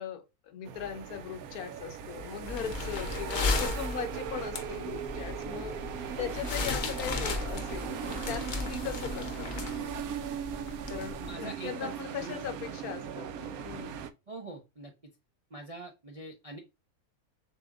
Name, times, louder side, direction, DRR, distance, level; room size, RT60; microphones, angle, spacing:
voice 1, 0.0-5.8 6.2-9.9 10.9-14.0, left 8 dB, 75° left, 1.2 m, -39 dB
sound 1, 0.7-14.1, right 8 dB, 75° right, 1.0 m, -39 dB
sound 2, 2.4-11.3, left 4 dB, 50° left, 0.6 m, -35 dB
voice 2, 11.2-12.3 14.3-14.9 15.5-16.6, right 2 dB, 50° right, 0.4 m, -43 dB
6.8 x 2.7 x 2.4 m
omnidirectional pair, 1.6 m